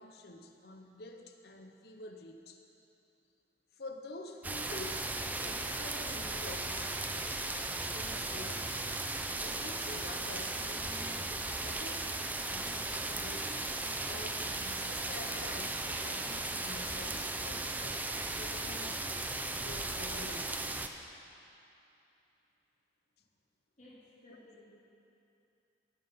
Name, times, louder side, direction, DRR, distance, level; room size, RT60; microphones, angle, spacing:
voice 1, 0.0-2.6 3.8-8.8 9.4-13.6 14.0-19.1 19.6-20.6 24.3-24.4, left 2 dB, 60° left, 5 dB, 0.8 m, -48 dB
sound 1, 4.4-20.9, right 2 dB, 10° right, 0.4 m, -36 dB
voice 2, 23.8-24.7, left 1 dB, 40° left, -10 dB, 3.5 m, -56 dB
18.0 x 7.4 x 5.6 m, 2.8 s
head